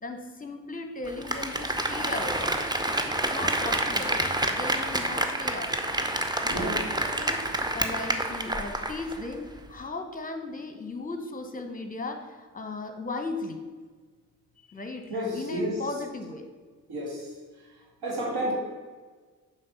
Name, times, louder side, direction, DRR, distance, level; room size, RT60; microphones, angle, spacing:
voice 1, 0.0-4.1 4.5-6.1 6.4-7.4 7.7-13.6 14.7-16.5, left 2 dB, 20° left, 6 dB, 1.2 m, -37 dB
Applause, 1.1-9.3 9.6-9.7, right 1 dB, 10° right, 0.8 m, -28 dB
voice 2, 6.5-6.8 15.1-15.7 16.9-17.2 18.0-18.5, equal, 55° right, -2 dB, 2.1 m, -30 dB
7.4 x 5.0 x 5.6 m, 1.4 s
figure-of-eight pair, 40°, 44 cm